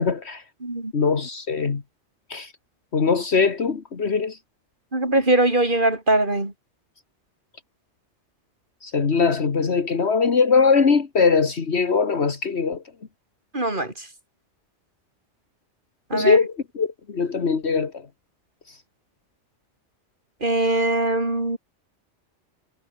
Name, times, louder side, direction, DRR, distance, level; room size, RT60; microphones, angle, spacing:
voice 1, 0.0-0.4 0.9-1.8 2.3-2.5 2.9-4.4 8.8-12.8 16.1-18.0 18.7-18.8, left 5 dB, 65° left, 2.0 m, -21 dB
voice 2, 0.6-0.9 4.9-6.5 13.5-13.9 16.1-16.4 20.4-21.6, right 2 dB, 45° right, 4.5 m, -21 dB
omnidirectional pair, 1.2 m